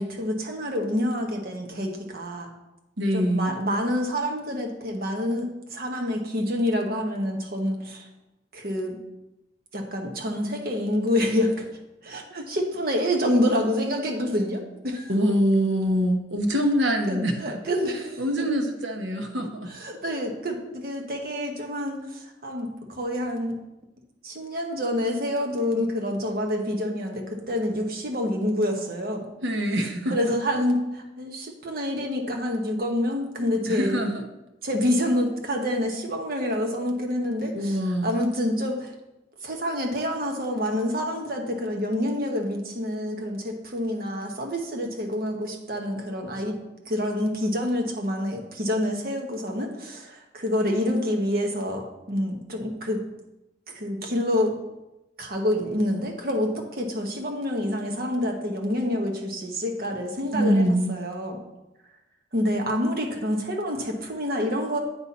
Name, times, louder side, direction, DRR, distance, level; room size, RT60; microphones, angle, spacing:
voice 1, 0.0-2.5 3.1-8.1 8.5-9.0 9.7-11.7 12.0-15.1 17.1-18.2 19.7-23.6 24.2-29.3 30.1-33.9 34.6-38.9 39.4-46.6 46.9-53.0 53.7-54.6 55.2-61.4 62.3-64.8, left 1 dB, 55° right, 2 dB, 1.1 m, -27 dB
voice 2, 3.0-3.6 15.1-17.6 18.2-19.7 29.4-30.2 33.7-34.2 37.5-38.2 60.3-60.9, equal, 90° right, 4 dB, 1.0 m, -24 dB
8.8 x 4.2 x 4.1 m, 0.93 s
head